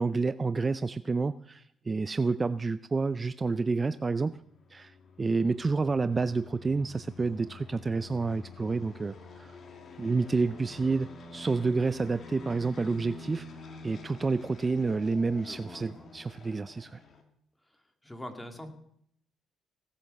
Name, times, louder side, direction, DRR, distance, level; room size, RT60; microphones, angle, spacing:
voice 1, 0.0-4.4 4.7-4.9 5.2-9.5 10.0-13.5 13.8-17.0, right 4 dB, 30° right, 14 dB, 0.4 m, -29 dB
sound 1, 3.9-17.2, left 3 dB, 55° left, 2.3 m, -48 dB
voice 2, 15.3-16.1 18.0-18.7, left 1 dB, 10° left, 6 dB, 2.5 m, -44 dB
17.5 x 8.5 x 6.7 m, 0.70 s
cardioid pair, 75°, 0 cm